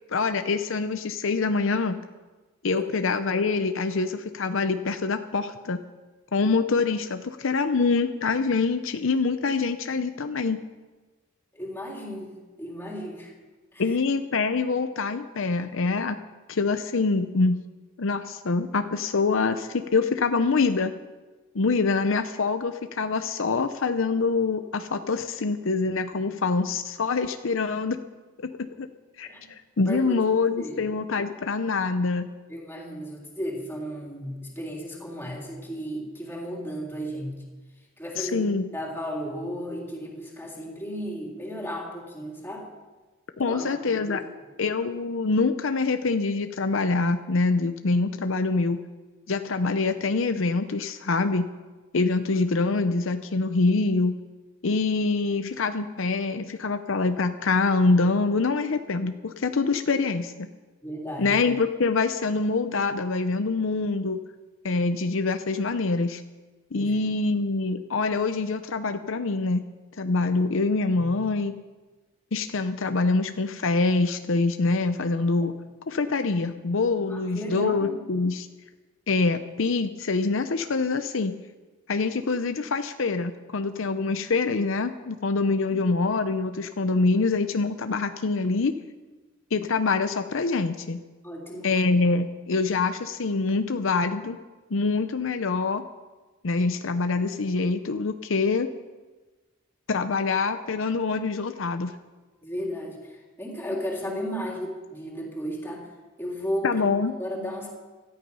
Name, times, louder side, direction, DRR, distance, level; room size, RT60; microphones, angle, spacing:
voice 1, 0.1-2.0 2.6-5.8 6.3-10.6 13.8-16.2 16.5-17.6 18.0-20.9 21.5-28.0 28.4-28.5 28.8-28.9 29.2-32.3 38.2-38.7 43.4-44.2 44.6-48.8 49.3-51.5 51.9-54.2 54.6-60.5 61.2-64.2 64.6-66.2 66.7-69.6 70.0-71.5 72.3-75.5 75.9-78.5 79.1-81.4 81.9-88.7 89.5-91.0 91.6-94.4 94.7-95.8 96.4-98.7 99.9-101.9 106.6-107.1, left 3 dB, 70° left, 9 dB, 0.7 m, -25 dB
voice 2, 11.5-12.3 12.6-13.3 13.7-13.8 26.1-26.2 29.2-29.5 29.8-30.2 30.6-30.8 32.5-37.4 38.0-42.7 43.4-44.2 60.8-61.3 66.7-66.9 77.1-78.1 85.6-85.8 91.2-91.7 102.4-105.9 106.2-106.8 107.2-107.7, equal, 10° left, -2 dB, 3.4 m, -34 dB
17.5 x 13.0 x 5.5 m, 1.3 s
head